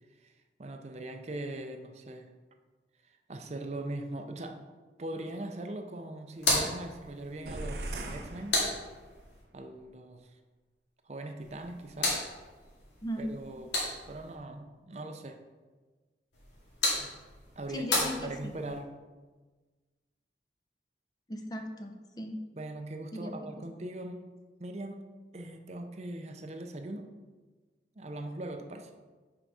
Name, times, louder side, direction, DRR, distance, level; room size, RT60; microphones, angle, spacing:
voice 1, 0.6-2.3 3.0-4.6 5.0-8.6 9.5-10.4 11.0-12.2 13.2-13.8 14.1-15.4 17.6-19.0 22.5-24.3 24.6-25.1 25.3-27.1 28.0-28.9, right 1 dB, 40° right, 5 dB, 0.5 m, -40 dB
sound 1, 6.3-9.4 11.4-14.3 16.3-18.8, left 2 dB, 85° left, 2.2 m, -34 dB
sound 2, 7.5-9.3, right 1 dB, 65° right, 0.8 m, -40 dB
voice 2, 17.7-18.5 21.3-22.4 23.1-23.3, equal, 20° left, 4 dB, 0.6 m, -38 dB
6.0 x 4.7 x 5.4 m, 1.3 s
head